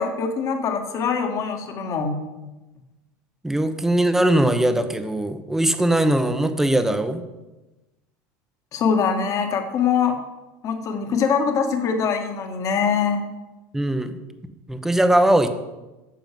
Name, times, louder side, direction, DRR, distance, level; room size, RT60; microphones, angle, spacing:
voice 1, 0.0-2.2 8.7-10.2 10.6-13.2, left 6 dB, 40° left, 5 dB, 1.8 m, -23 dB
voice 2, 3.4-7.2 13.7-14.2 14.7-15.5, right 1 dB, 5° right, 9 dB, 1.0 m, -20 dB
9.2 x 7.1 x 7.7 m, 1.1 s
supercardioid pair, 125°, 8 cm